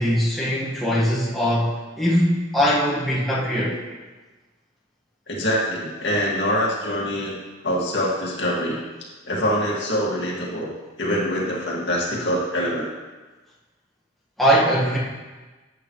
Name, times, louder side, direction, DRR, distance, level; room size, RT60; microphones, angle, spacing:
voice 1, 0.0-3.8 14.4-15.0, equal, ahead, -8 dB, 1.6 m, -21 dB
voice 2, 5.3-7.4 7.6-8.8 9.3-10.7 11.0-12.9, equal, 60° left, -4 dB, 2.2 m, -24 dB
11.5 x 8.3 x 3.2 m, 1.3 s
head